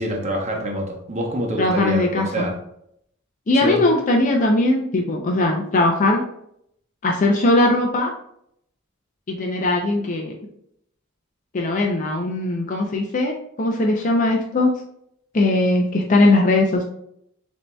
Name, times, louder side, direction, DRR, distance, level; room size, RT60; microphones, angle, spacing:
voice 1, 0.0-2.6 3.5-3.8, right 1 dB, 35° right, 1 dB, 0.8 m, -25 dB
voice 2, 1.6-2.5 3.5-6.2 7.0-8.1 9.3-10.3 11.5-14.7 15.3-16.8, left 2 dB, 40° left, 1 dB, 0.5 m, -19 dB
7.2 x 2.7 x 2.2 m, 0.73 s
head